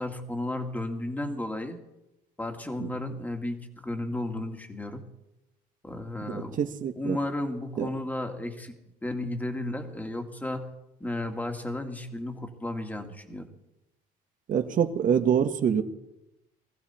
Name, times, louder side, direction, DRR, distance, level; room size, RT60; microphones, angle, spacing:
voice 1, 0.0-1.8 2.4-5.0 5.8-6.6 7.0-8.7 9.0-10.7 11.0-13.5, left 1 dB, 10° left, 5 dB, 2.1 m, -33 dB
voice 2, 6.2-7.2 7.8-7.9 14.5-15.8, right 8 dB, 55° right, 8 dB, 1.5 m, -26 dB
20.5 x 14.5 x 4.4 m, 0.90 s
cardioid pair, 110°, 17 cm